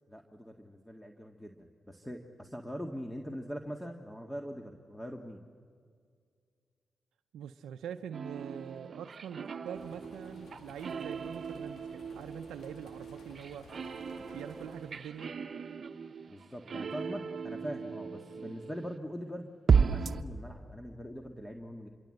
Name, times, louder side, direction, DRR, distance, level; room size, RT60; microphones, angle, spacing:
voice 1, 0.1-5.4 16.3-21.9, equal, 10° left, 3 dB, 1.9 m, -42 dB
voice 2, 7.3-13.7 14.1-15.3, right 8 dB, 85° right, 6 dB, 0.6 m, -44 dB
Lofi Loop Scoop, 8.1-19.0 19.7-20.2, right 6 dB, 60° right, 0.9 m, -35 dB
sound 1, 9.7-15.1, left 3 dB, 75° left, 2.4 m, -55 dB
26.5 x 23.0 x 7.8 m, 2.2 s
supercardioid pair, 50°, 0 cm